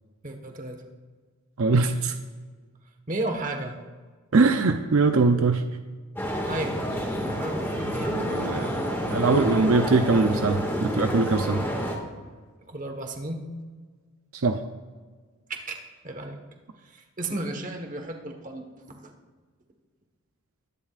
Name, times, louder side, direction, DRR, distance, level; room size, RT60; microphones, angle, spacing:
voice 1, 0.2-0.8 3.1-3.7 6.5-6.8 7.2-8.5 12.7-13.4 15.5-15.8 16.0-16.4 16.8-19.1, right 2 dB, 35° right, 4 dB, 1.3 m, -34 dB
voice 2, 1.6-2.1 4.3-5.6 8.1-8.7 9.1-11.6 14.3-14.6, right 3 dB, 70° right, 6 dB, 0.6 m, -22 dB
sound 1, 6.2-12.0, equal, 10° left, 1.9 m, -28 dB
22.0 x 11.0 x 2.5 m, 1.5 s
head